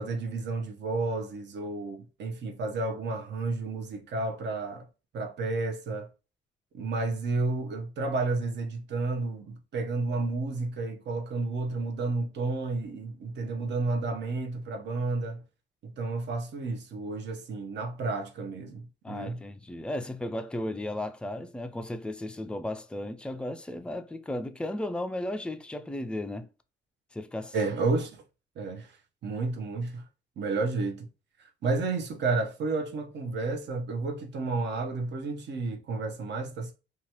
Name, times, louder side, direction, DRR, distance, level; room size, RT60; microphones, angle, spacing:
voice 1, 0.0-4.9 5.1-6.1 6.7-15.4 15.8-19.4 27.5-28.2 28.6-29.0 29.2-30.0 30.4-31.1 31.6-36.7, right 3 dB, 65° right, 0.7 m, -31 dB
voice 2, 19.0-26.5 27.1-27.5, left 1 dB, 5° left, 0.3 m, -35 dB
2.8 x 2.3 x 2.9 m
cardioid pair, 90°, 20 cm